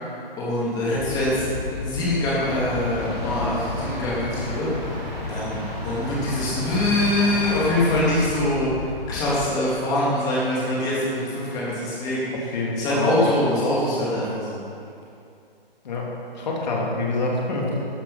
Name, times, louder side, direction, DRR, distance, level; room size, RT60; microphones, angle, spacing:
voice 1, 0.4-1.4 1.7-4.7 5.3-8.7 9.1-12.3 12.8-14.6, left 1 dB, 10° left, -7 dB, 2.9 m, -24 dB
sound 1, 0.9-9.5, left 5 dB, 30° left, 0.6 m, -34 dB
sound 2, 2.3-8.1, equal, 15° right, 3.8 m, -33 dB
voice 2, 12.5-13.6 15.8-17.7, left 2 dB, 45° left, -2 dB, 3.1 m, -26 dB
13.5 x 11.5 x 5.9 m, 2.5 s
hypercardioid pair, 160°, 30 cm